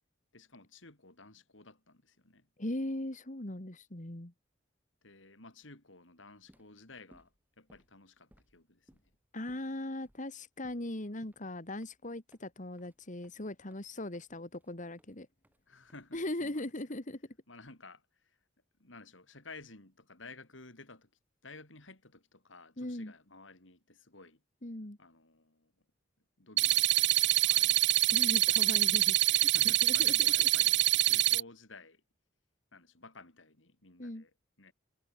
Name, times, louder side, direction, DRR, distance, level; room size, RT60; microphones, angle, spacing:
voice 1, 0.3-2.5 5.0-9.1 15.7-16.7 17.5-18.4 18.8-21.1 21.4-24.4 25.0-25.7 26.4-28.2 29.4-32.0 32.7-34.3 34.6-34.7, left 3 dB, 85° left, 4.7 m, -54 dB
voice 2, 2.6-4.3 9.3-15.3 16.1-17.4 22.8-23.1 24.6-25.0 28.1-30.5 34.0-34.2, left 1 dB, 40° left, 2.3 m, -39 dB
sound 1, 6.3-16.5, equal, 10° right, 7.2 m, -67 dB
sound 2, 26.6-31.4, right 15 dB, 65° right, 0.7 m, -25 dB
head